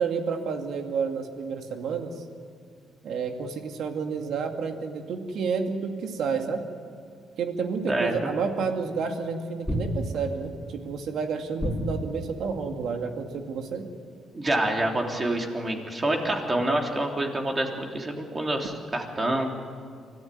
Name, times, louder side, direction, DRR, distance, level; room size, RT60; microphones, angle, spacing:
voice 1, 0.0-2.2 3.0-6.6 7.4-13.9, right 5 dB, 70° right, 5 dB, 2.3 m, -30 dB
voice 2, 7.9-8.3 14.3-19.5, right 1 dB, 25° right, 1 dB, 3.5 m, -27 dB
sound 1, 9.7-10.5 11.6-12.4, equal, 5° left, 4.7 m, -30 dB
24.5 x 15.0 x 9.3 m, 2.3 s
cardioid pair, 90°, 0 cm